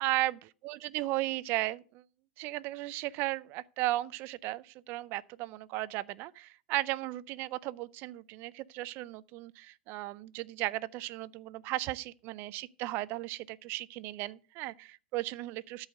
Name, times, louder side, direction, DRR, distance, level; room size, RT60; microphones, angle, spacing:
voice 1, 0.0-2.0 2.4-15.9, right 17 dB, 45° right, 0.5 m, -35 dB
13.0 x 4.8 x 6.5 m
hypercardioid pair, 120°, 5 cm